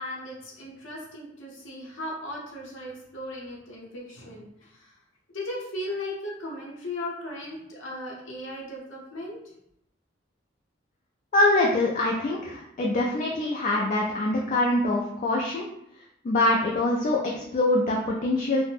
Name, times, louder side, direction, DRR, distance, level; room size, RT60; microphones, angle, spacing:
voice 1, 0.0-4.9 5.3-9.4, left 1 dB, 80° left, -4 dB, 0.7 m, -37 dB
voice 2, 11.3-15.7 16.2-18.6, left 2 dB, 40° left, -2 dB, 0.3 m, -24 dB
2.4 x 2.1 x 3.3 m, 0.76 s
head